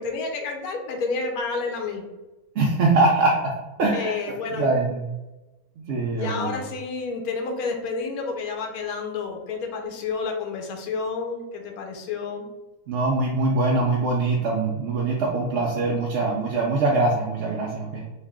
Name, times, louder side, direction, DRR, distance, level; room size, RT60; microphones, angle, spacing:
voice 1, 0.0-2.0 3.9-4.7 6.1-12.5, left 4 dB, 85° left, 3 dB, 1.1 m, -30 dB
voice 2, 2.6-3.3 3.8-4.1 4.5-5.1 5.9-6.6 12.9-18.1, right 3 dB, 65° right, -2 dB, 0.7 m, -23 dB
3.3 x 2.3 x 3.5 m, 1.1 s
omnidirectional pair, 1.5 m